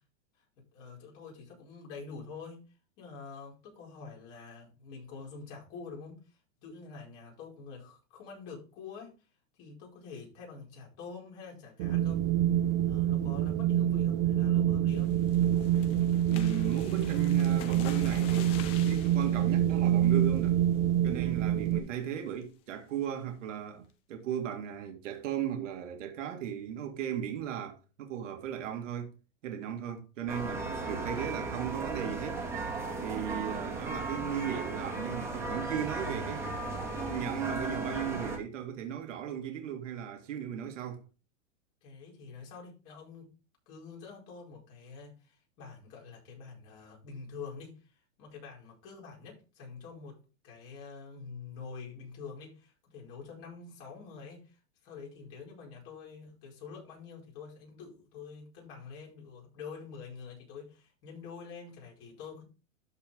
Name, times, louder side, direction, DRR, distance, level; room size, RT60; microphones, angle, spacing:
voice 1, 0.7-9.1 9.6-12.2 12.8-15.2 41.8-43.3 43.7-50.2 50.4-62.4, left 5 dB, 40° left, 4.9 m, -47 dB
Wind, 11.8-21.8, right 11 dB, 40° right, 0.6 m, -26 dB
sound 1, 14.9-20.6 21.1-21.3 21.7-21.8 22.1-22.4, left 10 dB, 15° left, 0.3 m, -48 dB
voice 2, 16.3-20.6 21.0-29.1 29.4-32.5 33.0-36.6 37.1-41.0, right 9 dB, 70° right, 2.1 m, -36 dB
sound 2, 30.3-38.4, right 3 dB, 5° right, 2.0 m, -36 dB
13.0 x 4.8 x 3.6 m
supercardioid pair, 150°, 38 cm